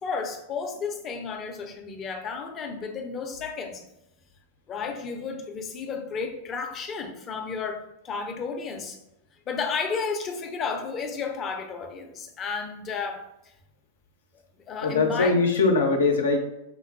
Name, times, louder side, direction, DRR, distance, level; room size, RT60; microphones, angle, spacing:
voice 1, 0.0-3.8 4.7-9.0 9.5-13.5 14.7-15.4, left 5 dB, 30° left, 4 dB, 0.7 m, -32 dB
voice 2, 14.8-16.4, left 3 dB, 75° left, 3 dB, 0.7 m, -21 dB
5.2 x 2.1 x 3.1 m, 0.87 s
figure-of-eight pair, 95°, 0 cm